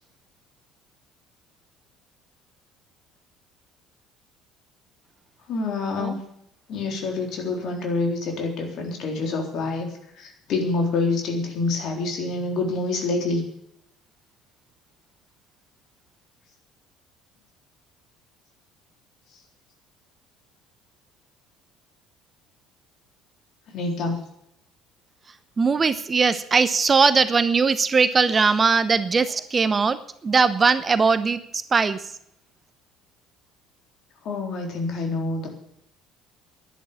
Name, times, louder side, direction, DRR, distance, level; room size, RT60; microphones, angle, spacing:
voice 1, 5.5-6.2 6.7-9.9 10.2-13.4 23.7-24.2 34.2-35.5, left 3 dB, 50° left, 2 dB, 3.8 m, -26 dB
voice 2, 25.6-30.0 30.2-31.4 31.7-32.0, right 5 dB, 30° right, 14 dB, 0.8 m, -20 dB
11.0 x 10.5 x 8.5 m, 0.74 s
figure-of-eight pair, 55°, 0 cm